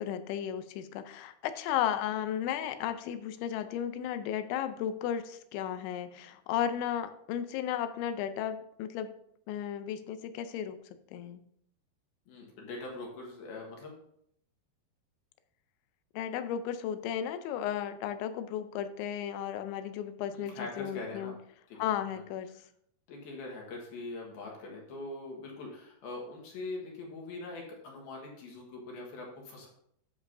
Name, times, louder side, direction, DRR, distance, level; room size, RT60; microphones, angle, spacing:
voice 1, 0.0-9.1 9.5-10.8 11.1-11.4 16.1-21.3 21.8-22.5, left 10 dB, 85° left, 11 dB, 3.0 m, -34 dB
voice 2, 12.3-13.9 20.3-21.3 21.7-21.8 22.1-22.2 22.5-22.6 23.1-29.7, left 2 dB, 65° left, -1 dB, 2.9 m, -42 dB
11.0 x 7.4 x 2.6 m, 0.70 s
omnidirectional pair, 5.2 m